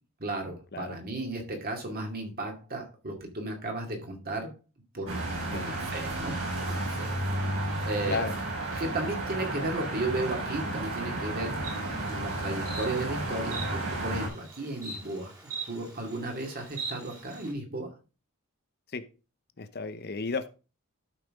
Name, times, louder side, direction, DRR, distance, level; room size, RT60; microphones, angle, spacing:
voice 1, 0.2-4.5 4.9-8.2 8.8-11.6 12.1-17.9, right 2 dB, 45° right, 2 dB, 2.3 m, -35 dB
sound 1, 5.1-14.3, right 2 dB, 65° right, 5.0 m, -32 dB
Insect, 11.6-17.5, right 4 dB, 15° right, 2.2 m, -42 dB
voice 2, 19.6-20.5, left 4 dB, 45° left, 11 dB, 0.9 m, -33 dB
12.5 x 5.8 x 3.7 m, 0.33 s
head